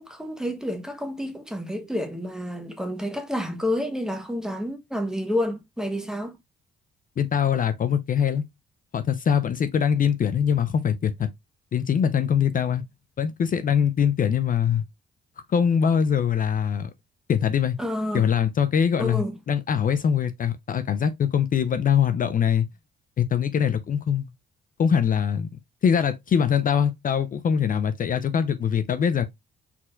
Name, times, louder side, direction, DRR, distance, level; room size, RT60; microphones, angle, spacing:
voice 1, 0.0-6.4 17.8-18.3 19.0-19.4, left 1 dB, 5° right, 1.1 m, -29 dB
voice 2, 7.2-8.5 8.9-11.3 11.7-12.8 13.2-14.8 15.5-16.9 17.3-17.8 18.1-22.7 23.2-24.3 24.8-25.5 25.8-29.3, left 7 dB, 45° left, 0.5 m, -23 dB
4.4 x 4.2 x 2.4 m
cardioid pair, 90°, 20 cm